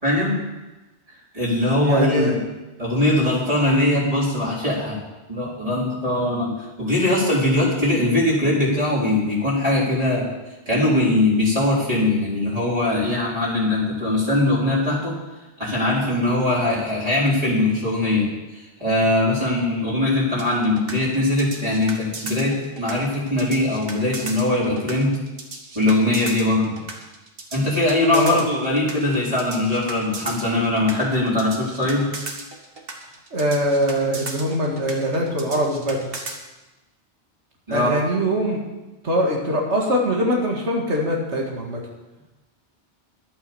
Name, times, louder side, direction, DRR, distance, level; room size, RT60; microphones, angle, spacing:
voice 1, 0.0-0.4 1.3-2.4 2.8-5.0 5.3-6.5 6.8-10.3 10.7-15.1 15.6-18.3 18.5-25.2 25.7-26.8 27.5-32.1 37.7-38.0, left 1 dB, 35° right, -6 dB, 4.1 m, -21 dB
voice 2, 1.8-2.4 28.1-28.4 33.3-36.0 37.7-38.6 39.0-41.8, equal, 85° right, 0 dB, 2.3 m, -22 dB
sound 1, 20.4-36.4, right 3 dB, 55° right, 1.7 m, -35 dB
11.5 x 8.8 x 6.9 m, 1.1 s
omnidirectional pair, 1.1 m